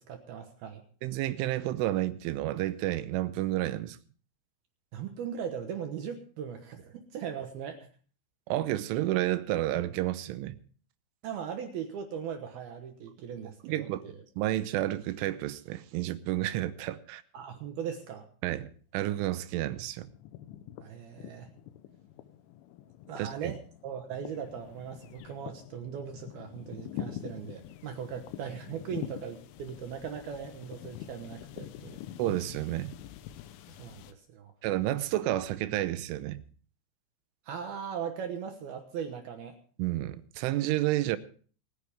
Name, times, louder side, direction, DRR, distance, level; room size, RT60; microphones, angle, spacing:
voice 1, 0.1-0.8 4.9-7.9 11.2-14.1 17.3-18.3 20.8-21.5 23.1-32.0 33.7-34.5 37.5-39.6, right 7 dB, 70° right, 5 dB, 2.6 m, -39 dB
voice 2, 1.0-4.0 8.5-10.6 13.6-14.1 14.4-17.2 18.4-20.1 23.2-23.6 32.2-32.9 34.6-36.4 39.8-41.2, right 15 dB, 90° right, 13 dB, 3.3 m, -30 dB
sound 1, 19.0-19.6 19.9-34.1, left 11 dB, 85° left, 3.4 m, -45 dB
26.0 x 9.8 x 3.5 m, 0.43 s
omnidirectional pair, 5.6 m